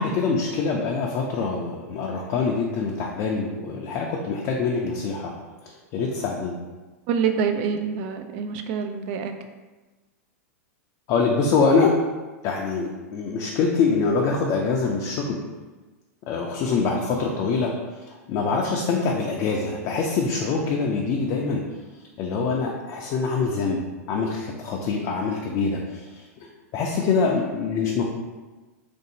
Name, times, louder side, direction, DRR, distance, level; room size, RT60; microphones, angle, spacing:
voice 1, 0.0-5.3 5.9-6.5 11.1-11.9 12.4-15.4 16.3-17.7 18.3-21.6 22.2-23.8 24.1-26.1 26.7-28.1, left 4 dB, 45° left, -1 dB, 0.4 m, -24 dB
voice 2, 7.1-9.3, right 6 dB, 55° right, 7 dB, 0.3 m, -26 dB
2.9 x 2.6 x 2.7 m, 1.2 s
hypercardioid pair, 110°, 8 cm